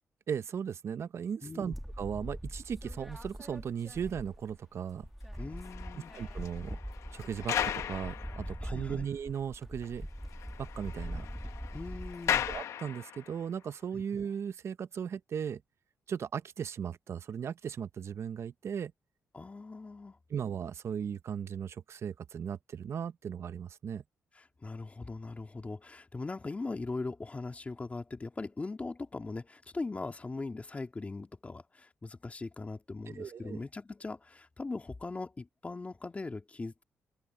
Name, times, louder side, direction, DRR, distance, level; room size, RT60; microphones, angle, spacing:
voice 1, 0.3-5.1 5.9-6.8 7.1-10.1 10.6-11.3 12.5-15.6 16.1-18.9 20.3-24.0 33.1-33.6, right 7 dB, 60° right, 0.8 m, -37 dB
voice 2, 1.4-1.8 5.4-6.1 8.6-9.1 11.7-12.5 13.9-14.0 19.3-20.2 24.3-36.8, left 3 dB, 25° left, 2.1 m, -40 dB
sound 1, 1.7-4.6 4.9-12.6, equal, ahead, 2.3 m, -42 dB
sound 2, 5.3-9.0 9.4-9.5 9.8-9.9 10.2-13.5 14.1-14.3, left 9 dB, 85° left, 1.2 m, -37 dB
open air
cardioid pair, 80°, 5 cm